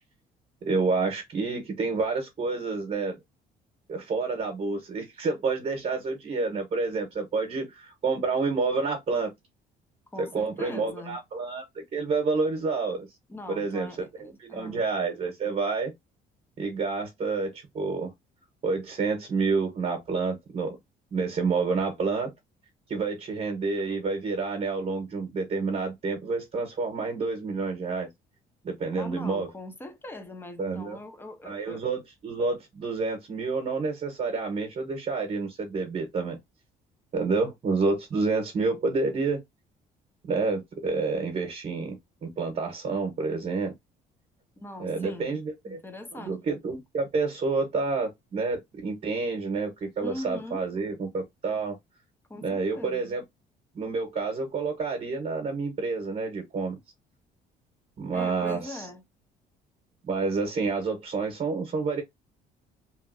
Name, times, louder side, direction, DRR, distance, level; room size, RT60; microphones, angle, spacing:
voice 1, 0.6-3.2 3.9-9.3 10.2-11.6 11.9-13.1 13.5-15.9 16.6-18.1 18.6-20.8 21.1-22.3 22.9-28.1 28.6-29.5 30.6-31.0 31.4-36.4 37.1-39.4 40.2-43.7 44.8-45.8 46.1-51.8 52.4-53.2 53.7-56.8 58.0-58.9 60.1-62.0, right 4 dB, 40° right, 1.0 m, -29 dB
voice 2, 10.1-11.2 13.3-14.8 29.0-31.8 44.6-45.4 45.7-46.4 50.0-50.7 52.3-53.2 58.1-59.0, left 1 dB, 15° left, 0.7 m, -41 dB
3.0 x 2.5 x 2.5 m
cardioid pair, 110°, 17 cm